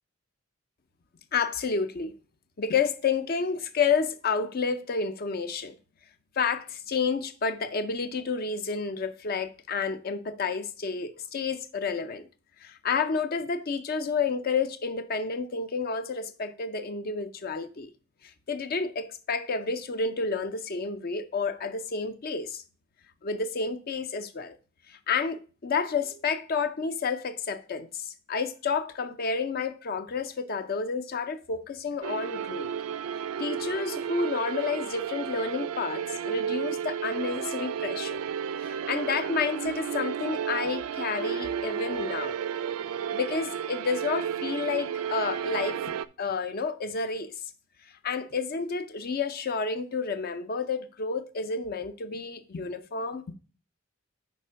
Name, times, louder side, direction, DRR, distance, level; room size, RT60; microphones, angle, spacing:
voice 1, 1.3-2.2 2.6-5.8 6.4-12.3 12.6-17.9 18.2-22.6 23.2-24.6 24.9-32.7 33.4-38.2 38.6-42.4 43.1-45.8 46.2-47.4 48.0-53.3, left 5 dB, 45° left, 0.5 m, -30 dB
sound 1, 32.0-46.1, right 8 dB, 85° right, 0.3 m, -32 dB
5.4 x 4.2 x 5.5 m
head